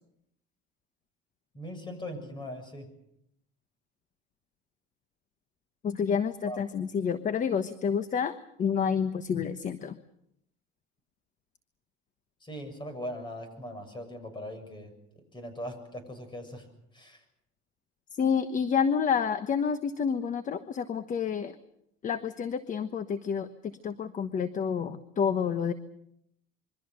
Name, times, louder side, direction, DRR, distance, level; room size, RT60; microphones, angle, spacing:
voice 1, 1.5-2.9 6.4-6.6 12.4-14.9 15.3-16.7 16.9-17.2, left 1 dB, 20° left, 9 dB, 7.1 m, -40 dB
voice 2, 5.8-10.0 18.2-21.5 22.0-23.5 23.8-25.7, left 7 dB, 35° left, 11 dB, 1.2 m, -29 dB
26.5 x 23.5 x 6.7 m, 0.77 s
cardioid pair, 115°, 21 cm